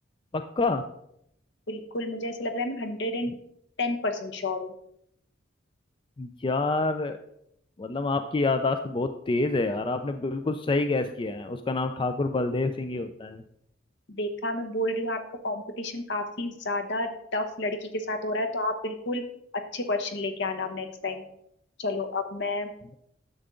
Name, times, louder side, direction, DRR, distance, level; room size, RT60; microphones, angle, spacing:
voice 1, 0.3-0.8 6.2-7.2 7.8-13.4, left 3 dB, 25° left, 8 dB, 0.4 m, -27 dB
voice 2, 1.7-3.3 3.8-4.7 14.1-19.2 19.7-21.2 21.8-22.7, left 2 dB, 60° left, 7 dB, 1.0 m, -30 dB
10.0 x 6.8 x 3.8 m, 0.75 s
head